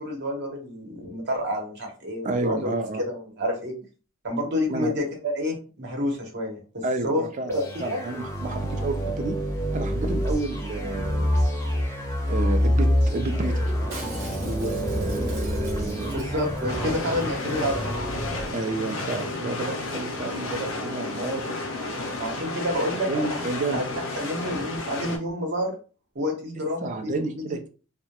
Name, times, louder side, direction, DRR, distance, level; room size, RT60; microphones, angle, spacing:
voice 1, 0.0-2.7 3.0-3.7 4.2-8.0 16.1-18.0 22.2-23.5 23.7-23.8 24.2-25.8 26.1-27.4, left 1 dB, 55° right, 1 dB, 0.8 m, -29 dB
voice 2, 2.2-3.0 4.7-4.9 6.8-9.4 9.7-11.3 12.2-13.7 14.4-16.2 18.5-21.8 22.9-23.8 26.8-27.7, right 2 dB, 35° right, 6 dB, 0.4 m, -30 dB
sound 1, 7.5-18.5, equal, 15° left, 0.6 m, -27 dB
Shatter, 13.9-16.6 16.9-17.0 17.2-17.6 17.9-18.0, right 3 dB, 85° right, 0.9 m, -43 dB
sound 2, 16.7-25.2, left 2 dB, 70° left, 0.6 m, -32 dB
2.2 x 2.0 x 2.8 m, 0.36 s
head